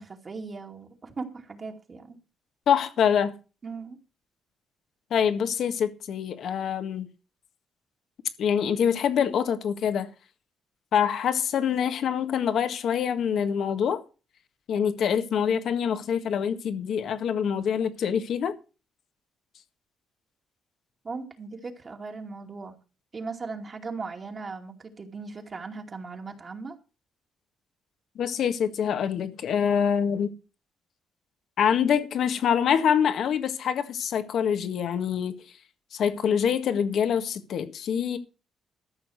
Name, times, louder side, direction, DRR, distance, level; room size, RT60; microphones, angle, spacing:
voice 1, 0.0-2.2 3.6-4.0 21.0-22.8 23.1-26.8, right 4 dB, 35° right, 2.4 m, -38 dB
voice 2, 2.7-3.3 5.1-7.1 8.4-10.1 10.9-14.0 14.7-18.5 28.1-30.3 31.6-35.3 35.9-38.2, left 8 dB, 70° left, 1.7 m, -25 dB
13.5 x 6.3 x 6.4 m
cardioid pair, 90°, 0 cm